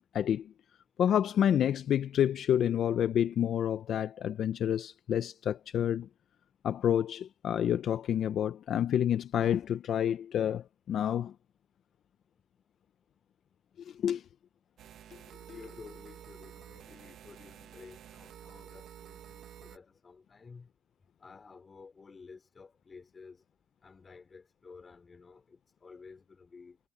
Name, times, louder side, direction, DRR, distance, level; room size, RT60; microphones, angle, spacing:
voice 1, 0.1-0.5 1.0-6.1 6.6-11.3 13.9-14.2, left 10 dB, 65° left, 0.6 m, -28 dB
sound 1, 14.8-19.8, right 10 dB, 75° right, 1.3 m, -51 dB
voice 2, 15.5-20.7 21.2-23.4 23.8-26.8, left 4 dB, 35° left, 4.3 m, -52 dB
cardioid pair, 90°, 0 cm